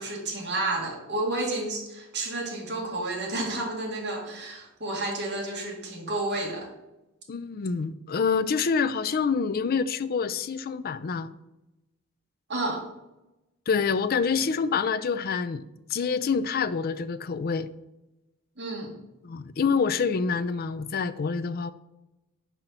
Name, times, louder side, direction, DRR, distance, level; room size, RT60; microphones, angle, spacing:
voice 1, 0.0-6.7 12.5-12.8 18.6-18.9, right 2 dB, 55° right, 2.1 m, -31 dB
voice 2, 7.3-11.3 13.7-15.6 15.9-17.7 19.2-21.7, left 5 dB, 45° left, 0.4 m, -27 dB
5.8 x 5.3 x 5.9 m
head